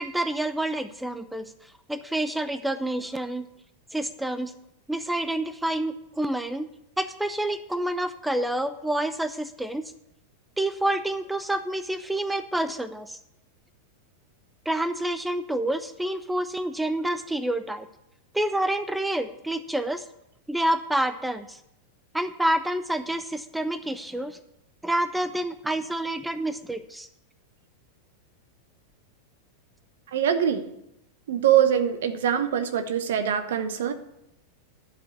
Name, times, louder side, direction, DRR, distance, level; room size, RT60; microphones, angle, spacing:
voice 1, 0.0-3.5 3.9-4.5 4.9-6.7 7.0-9.9 10.6-13.2 14.7-17.9 18.3-20.0 20.5-21.6 22.1-24.4 24.8-27.1, right 1 dB, 5° right, 12 dB, 0.5 m, -28 dB
voice 2, 30.1-30.7 31.3-33.9, right 9 dB, 60° right, 10 dB, 0.9 m, -23 dB
11.5 x 5.1 x 7.9 m, 0.81 s
figure-of-eight pair, 90°, 0 cm